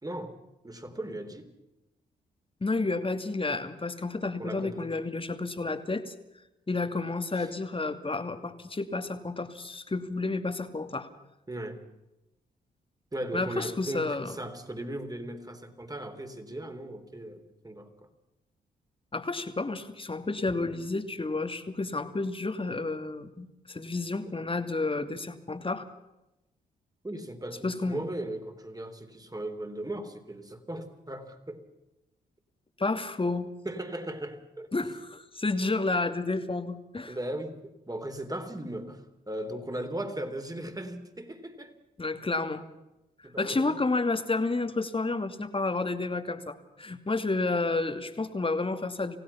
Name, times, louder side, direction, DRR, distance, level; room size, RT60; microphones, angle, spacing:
voice 1, 0.0-0.4 0.6-1.5 4.4-5.0 7.4-7.5 11.5-11.8 13.1-17.9 20.5-20.6 27.0-31.6 33.6-34.9 37.1-37.6 37.9-41.7 43.2-43.8, right 1 dB, 20° right, 7 dB, 3.8 m, -37 dB
voice 2, 2.6-6.1 6.7-11.1 13.3-14.3 19.1-25.9 27.6-28.0 32.8-33.5 34.7-37.2 42.0-42.6 43.4-49.2, left 3 dB, 30° left, 8 dB, 2.4 m, -30 dB
28.0 x 16.5 x 5.8 m, 0.94 s
hypercardioid pair, 40°, 19 cm